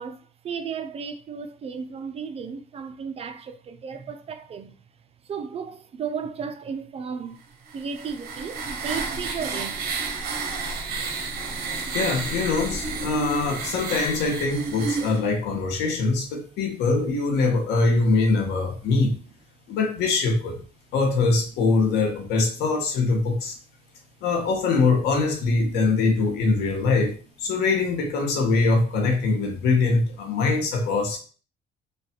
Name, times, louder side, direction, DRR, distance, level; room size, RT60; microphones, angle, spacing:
voice 1, 0.0-4.7 5.2-9.9, right 6 dB, 35° right, 0.4 m, -34 dB
sound 1, 7.7-15.2, right 4 dB, 65° right, 0.9 m, -30 dB
voice 2, 11.8-19.1 19.7-20.6 20.9-23.6 24.2-31.2, left 3 dB, 80° left, 1.0 m, -23 dB
3.3 x 2.3 x 4.2 m
cardioid pair, 110°, 17 cm